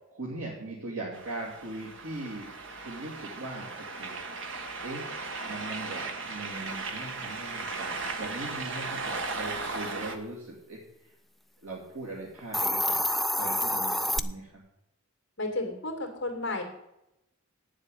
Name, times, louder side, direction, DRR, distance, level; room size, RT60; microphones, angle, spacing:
voice 1, 0.1-2.5 2.8-4.2 4.8-11.1 11.6-13.1 13.3-14.6, right 2 dB, 75° right, -6 dB, 2.8 m, -40 dB
sound 1, 1.1-10.2, right 3 dB, 60° right, 1.4 m, -37 dB
Hiss, 12.4-14.2, left 1 dB, ahead, 0.3 m, -27 dB
voice 2, 15.4-16.6, left 2 dB, 55° left, 4 dB, 2.6 m, -32 dB
9.4 x 7.5 x 8.2 m, 0.88 s
head